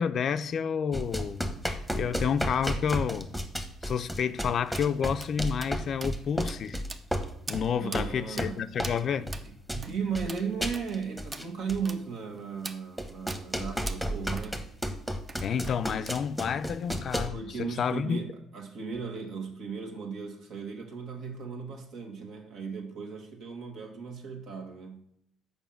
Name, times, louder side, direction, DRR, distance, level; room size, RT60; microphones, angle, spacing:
voice 1, 0.0-1.6 1.9-3.3 3.8-6.8 7.5-9.3 15.4-18.2, left 7 dB, 55° left, 0.5 m, -30 dB
sound 1, 0.9-9.0 9.3-11.8 12.6-12.7 13.0-17.3, equal, 5° right, 1.1 m, -33 dB
sound 2, 4.7-4.9 5.2-5.3 5.6-5.8 6.0-6.1 6.5-6.6 6.9-7.2 7.5-7.6 7.9-8.0 8.4-8.5 8.8-9.0 9.3-9.5 9.8-9.9 10.3-10.4 10.7-10.9 11.3-11.5 11.8-12.0 12.6-12.8 13.3-13.4 13.9-14.0 14.4-14.5 14.8-14.9 15.3-15.8 16.1-16.5, right 3 dB, 30° right, 0.7 m, -41 dB
voice 2, 7.7-8.7 9.2-9.3 9.7-14.6 17.3-25.0, right 6 dB, 70° right, 1.8 m, -36 dB
7.1 x 5.4 x 5.6 m
cardioid pair, 90°, 0 cm